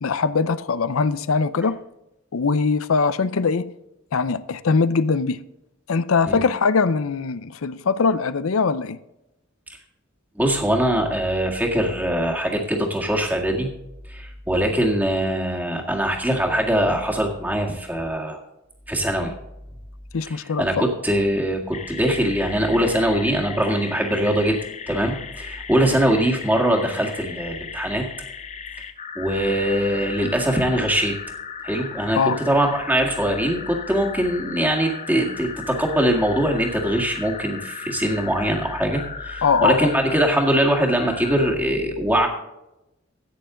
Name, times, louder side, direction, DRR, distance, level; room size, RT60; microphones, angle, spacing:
voice 1, 0.0-1.8 2.3-3.7 4.1-5.4 5.9-9.0 20.1-20.8 32.1-32.4 39.4-39.9, left 5 dB, 80° left, 0.6 m, -21 dB
voice 2, 10.4-13.7 14.1-18.4 18.9-19.3 20.3-24.6 24.9-28.0 29.2-31.1 31.6-32.2 32.5-42.3, right 1 dB, 10° right, 1.8 m, -22 dB
sound 1, 21.7-41.6, left 6 dB, 35° left, 0.6 m, -36 dB
14.0 x 9.3 x 3.8 m
head